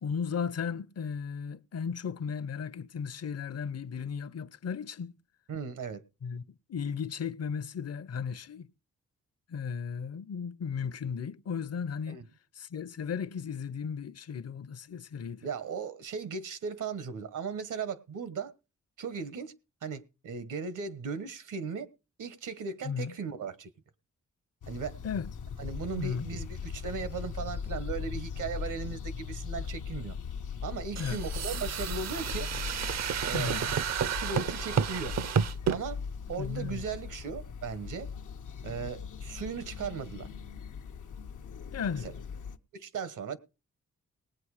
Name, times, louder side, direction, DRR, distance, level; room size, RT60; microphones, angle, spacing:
voice 1, 0.0-5.2 6.2-6.4 6.7-8.7 9.5-12.2 12.5-15.5 22.8-23.1 25.0-25.3 25.9-26.3 31.0-31.2 33.3-33.7 36.4-36.8 41.7-42.1, left 6 dB, 55° left, 0.7 m, -35 dB
voice 2, 5.5-6.0 12.1-12.2 15.4-18.5 19.0-19.5 19.8-21.9 22.2-23.7 24.7-24.9 25.6-30.2 30.6-32.5 33.2-33.6 34.0-35.2 35.7-36.0 36.3-38.1 38.6-40.3 42.0-42.1 42.7-43.4, right 5 dB, 85° right, 1.3 m, -37 dB
sound 1, 24.6-42.6, left 6 dB, 85° left, 0.9 m, -39 dB
sound 2, 31.0-35.8, right 8 dB, 60° right, 0.6 m, -31 dB
18.5 x 8.3 x 4.9 m
cardioid pair, 70°, 30 cm